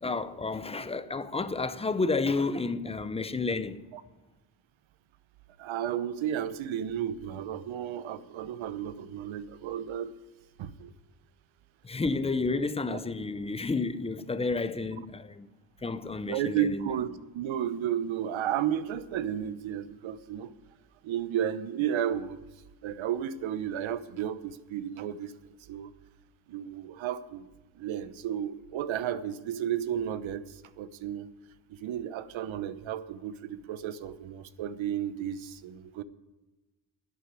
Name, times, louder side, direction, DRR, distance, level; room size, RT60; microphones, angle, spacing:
voice 1, 0.0-3.8 11.8-15.5 15.8-16.9, left 3 dB, 15° left, 0.5 m, -31 dB
voice 2, 5.6-10.1 10.6-10.9 16.2-20.5 21.0-22.4 22.8-25.3 25.7-25.9 26.5-27.5 27.7-31.3 31.7-36.0, right 10 dB, 70° right, 1.0 m, -33 dB
11.0 x 8.3 x 9.3 m
cardioid pair, 120°, 48 cm